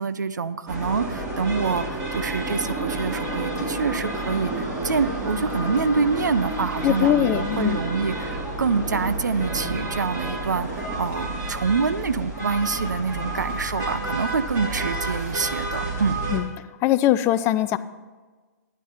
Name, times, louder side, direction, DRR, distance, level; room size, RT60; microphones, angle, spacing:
voice 1, 0.0-16.2, right 5 dB, 90° right, 13 dB, 0.7 m, -26 dB
sound 1, 0.7-16.4, right 2 dB, 20° right, 3.1 m, -30 dB
voice 2, 6.8-7.8 16.3-16.4 16.8-17.8, left 13 dB, 25° left, 13 dB, 0.5 m, -21 dB
11.5 x 9.8 x 5.8 m, 1.4 s
hypercardioid pair, 135°, 9 cm